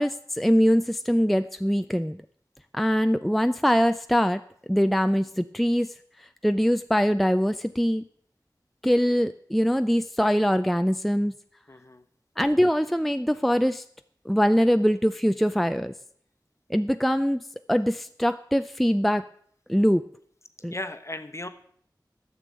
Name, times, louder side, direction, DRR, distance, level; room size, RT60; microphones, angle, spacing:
voice 1, 0.0-2.2 2.7-4.4 4.7-5.9 6.4-8.0 8.8-11.3 12.4-13.8 14.3-15.9 16.7-17.4 17.7-19.2 19.7-20.0 20.6-20.7, equal, ahead, 10 dB, 0.4 m, -23 dB
voice 2, 11.7-12.0 20.7-21.5, left 1 dB, 40° left, 9 dB, 1.0 m, -36 dB
12.0 x 6.9 x 7.5 m, 0.63 s
wide cardioid pair, 50°, 8 cm